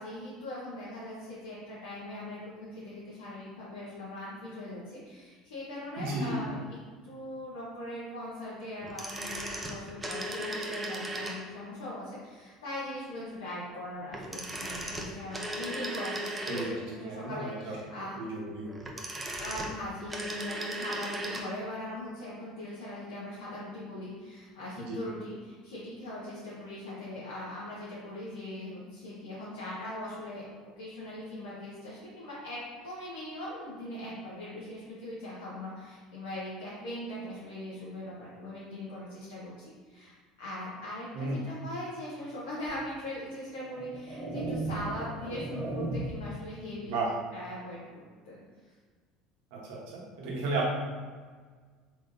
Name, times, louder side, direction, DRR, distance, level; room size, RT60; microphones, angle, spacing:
voice 1, 0.0-6.6 7.0-18.2 19.4-30.4 30.8-46.9 47.3-48.4, left 1 dB, 80° left, -8 dB, 0.8 m, -40 dB
voice 2, 6.0-6.4 16.5-17.8 18.2-18.7 24.8-25.0 41.1-41.4 46.8-47.1 49.5-50.7, right 2 dB, 70° right, -3 dB, 0.9 m, -33 dB
sound 1, 8.8-11.7 14.1-17.0 18.6-21.5 21.8-21.9, right 1 dB, 15° right, 0.6 m, -37 dB
sound 2, 42.7-42.8 43.6-46.3, right 2 dB, 30° right, 1.3 m, -36 dB
3.7 x 3.1 x 2.5 m, 1.5 s
hypercardioid pair, 75°, 0 cm